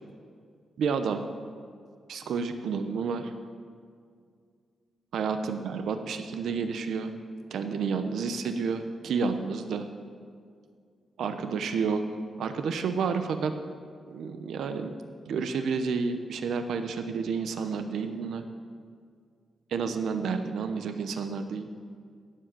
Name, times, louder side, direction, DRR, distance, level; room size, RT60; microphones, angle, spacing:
voice 1, 0.8-1.2 2.1-3.3 5.1-7.1 7.5-9.9 11.2-12.0 12.4-13.5 14.1-14.9 15.3-18.4 19.7-21.7, right 5 dB, 85° right, 8 dB, 0.9 m, -30 dB
17.0 x 7.7 x 7.6 m, 2.2 s
wide cardioid pair, 175°, 0 cm